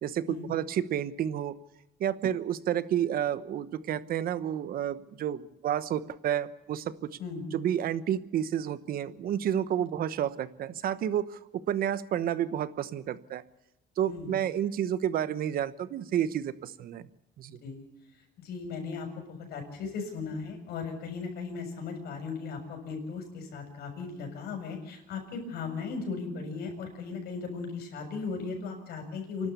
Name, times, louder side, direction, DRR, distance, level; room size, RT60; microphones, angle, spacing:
voice 1, 0.0-1.5 2.0-6.9 7.5-13.4 14.0-17.1 17.4-17.6, right 10 dB, 60° right, 15 dB, 1.1 m, -30 dB
voice 2, 18.4-29.5, left 4 dB, 70° left, 4 dB, 7.1 m, -37 dB
28.0 x 12.0 x 8.4 m, 0.89 s
cardioid pair, 110°, 17 cm